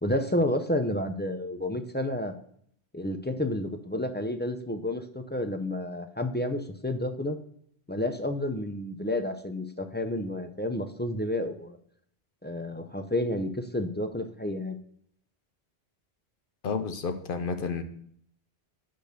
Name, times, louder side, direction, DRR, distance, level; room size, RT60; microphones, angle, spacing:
voice 1, 0.0-2.3 2.9-7.4 7.9-11.8 12.4-14.8, left 1 dB, 15° left, 7 dB, 0.3 m, -30 dB
voice 2, 16.6-17.8, left 5 dB, 55° left, 8 dB, 0.9 m, -31 dB
5.9 x 5.2 x 6.7 m, 0.66 s
omnidirectional pair, 1.1 m